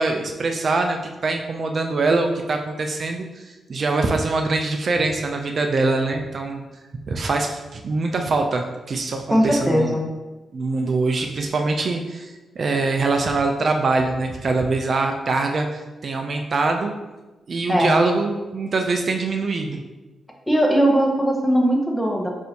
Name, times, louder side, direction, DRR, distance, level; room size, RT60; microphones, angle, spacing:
voice 1, 0.0-6.7 7.1-10.0 10.5-16.9 17.5-19.8, right 3 dB, 50° right, 4 dB, 0.4 m, -23 dB
voice 2, 9.3-10.1 17.7-18.0 20.5-22.3, equal, 5° left, 0 dB, 0.8 m, -19 dB
6.1 x 2.6 x 2.7 m, 1.1 s
cardioid pair, 85°, 0 cm